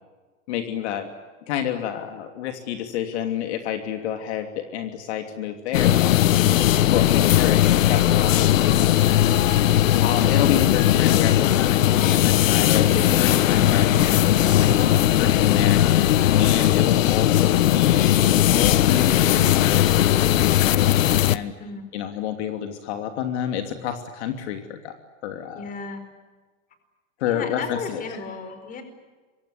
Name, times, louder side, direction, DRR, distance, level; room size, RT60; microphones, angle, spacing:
voice 1, 0.5-1.1 1.5-6.2 6.9-9.0 9.7-21.5 21.9-24.9 25.2-25.7 27.2-28.2, left 9 dB, 60° left, 6 dB, 2.9 m, -29 dB
sound 1, 5.7-21.4, left 12 dB, 85° left, 1.3 m, -18 dB
voice 2, 21.6-22.0 25.5-26.1 27.2-28.8, left 4 dB, 20° left, 9 dB, 4.7 m, -35 dB
27.5 x 24.0 x 8.5 m, 1.3 s
supercardioid pair, 155°, 38 cm